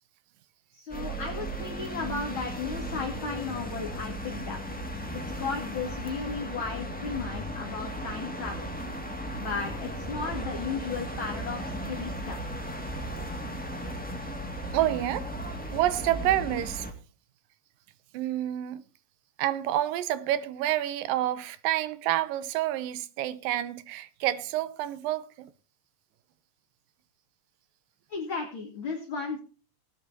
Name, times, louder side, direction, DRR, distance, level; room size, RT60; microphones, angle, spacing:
voice 1, 0.7-4.6 5.4-8.6 9.4-12.6 28.1-29.4, left 4 dB, 40° left, 2.7 m, -35 dB
sound 1, 0.9-16.9, equal, 5° left, 1.1 m, -36 dB
voice 2, 14.7-15.3 15.7-16.9 18.1-18.8 19.4-25.5, right 13 dB, 85° right, 2.5 m, -28 dB
18.5 x 9.9 x 2.8 m
omnidirectional pair, 4.0 m